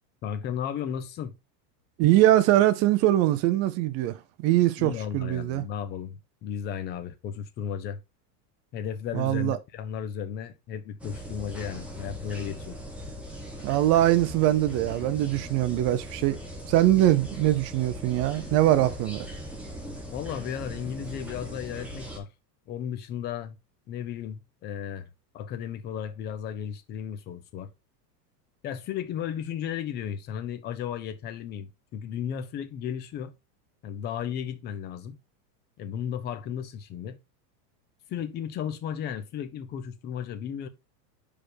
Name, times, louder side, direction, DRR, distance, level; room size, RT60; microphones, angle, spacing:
voice 1, 0.2-1.3 4.8-8.0 8.7-12.8 20.1-22.3 22.7-23.6 23.9-25.1 25.3-27.7 28.6-33.3 33.8-35.2 35.8-37.2 38.1-40.7, left 8 dB, 20° left, 0.5 m, -34 dB
voice 2, 2.0-5.6 9.1-9.6 13.6-16.4 16.7-19.3, right 14 dB, 30° right, 0.5 m, -22 dB
sound 1, 11.0-22.2, equal, 5° right, 1.5 m, -40 dB
5.0 x 4.9 x 4.6 m
supercardioid pair, 155°, 49 cm